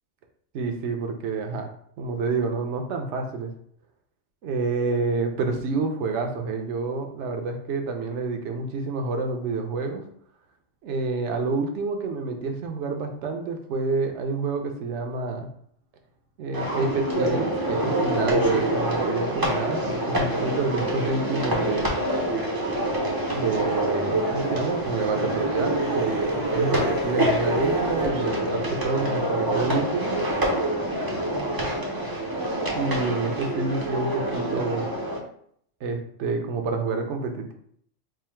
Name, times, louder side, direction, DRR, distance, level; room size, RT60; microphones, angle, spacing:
voice 1, 0.5-1.7 2.0-3.5 4.4-10.0 10.8-15.5 16.4-21.9 23.3-30.1 32.7-34.9 35.8-37.5, right 3 dB, 70° right, 4 dB, 0.9 m, -28 dB
sound 1, 16.5-35.2, right 1 dB, 25° right, 0.5 m, -26 dB
sound 2, 23.3-28.1, right 3 dB, 90° right, 1.2 m, -44 dB
3.6 x 2.1 x 4.4 m, 0.65 s
omnidirectional pair, 1.3 m